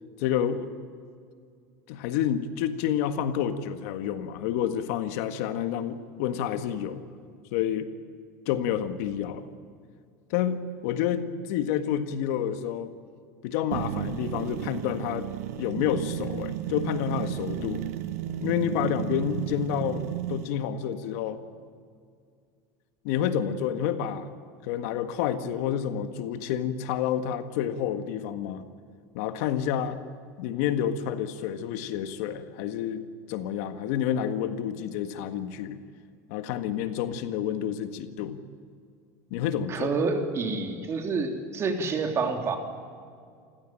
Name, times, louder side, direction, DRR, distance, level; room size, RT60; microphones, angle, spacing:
voice 1, 0.2-0.7 1.9-7.0 7.5-7.9 8.5-9.5 10.3-12.9 13.4-15.3 15.6-17.8 18.4-21.4 23.0-24.3 24.6-28.7 29.1-30.0 30.4-35.8 36.3-38.4 39.3-39.9, left 9 dB, 70° left, 9 dB, 1.7 m, -29 dB
sound 1, 13.7-20.5, right 12 dB, 85° right, 1.1 m, -33 dB
voice 2, 39.7-42.6, right 4 dB, 35° right, 4 dB, 3.5 m, -28 dB
28.5 x 16.0 x 9.1 m, 2.2 s
supercardioid pair, 120°, 8 cm